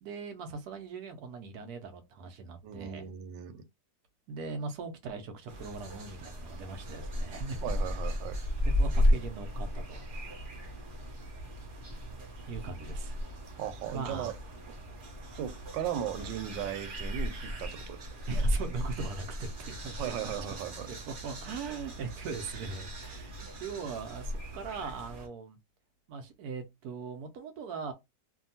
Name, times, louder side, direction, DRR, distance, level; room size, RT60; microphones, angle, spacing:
voice 1, 0.0-3.1 4.3-7.6 8.6-10.1 12.5-13.2 13.9-14.3 18.3-20.1 20.9-23.3 23.6-25.6 26.1-27.9, right 5 dB, 70° right, 1.0 m, -40 dB
voice 2, 2.6-3.6 7.6-8.4 13.6-14.4 15.3-18.0 20.0-20.9, right 9 dB, 90° right, 1.2 m, -37 dB
sound 1, 5.5-25.3, equal, 55° right, 0.5 m, -35 dB
2.7 x 2.6 x 2.6 m
omnidirectional pair, 1.9 m